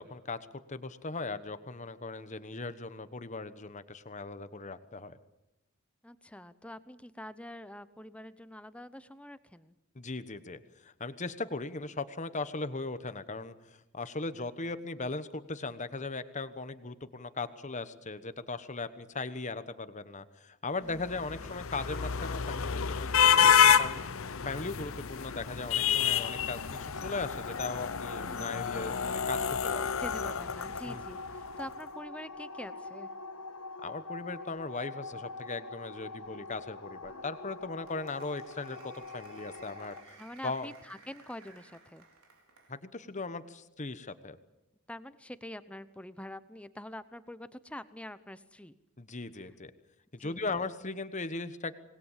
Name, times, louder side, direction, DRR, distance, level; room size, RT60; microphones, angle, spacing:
voice 1, 0.0-5.2 9.9-30.3 30.8-31.0 33.8-40.7 42.7-44.4 49.0-49.7 50.1-51.7, left 3 dB, 35° left, 12 dB, 1.2 m, -38 dB
voice 2, 6.0-9.8 20.8-21.1 21.4-21.6 28.2-28.6 30.0-33.1 40.2-42.1 44.9-48.8 50.2-50.4, left 1 dB, 5° left, 13 dB, 0.8 m, -45 dB
sound 1, 21.0-31.3, left 8 dB, 65° left, 0.8 m, -28 dB
sound 2, 26.1-40.0, left 3 dB, 85° left, 1.5 m, -44 dB
Applause, 37.0-42.8, right 4 dB, 80° right, 4.1 m, -58 dB
26.0 x 20.0 x 7.4 m, 0.90 s
head